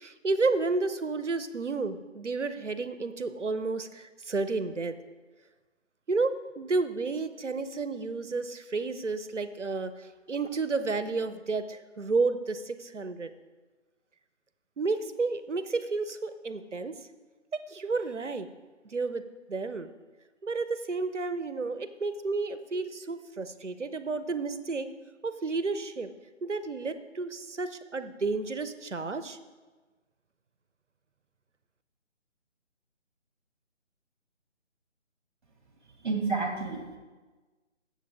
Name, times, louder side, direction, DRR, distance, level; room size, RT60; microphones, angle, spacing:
voice 1, 0.0-4.9 6.1-9.9 10.3-13.3 14.8-17.0 17.5-18.5 18.9-19.2 19.5-19.9 20.4-24.9 25.2-26.1 26.4-29.4, right 3 dB, 70° right, 11 dB, 0.9 m, -31 dB
voice 2, 36.0-37.0, right 4 dB, 40° right, 2 dB, 2.3 m, -30 dB
17.0 x 7.3 x 3.6 m, 1.3 s
figure-of-eight pair, 155°, 37 cm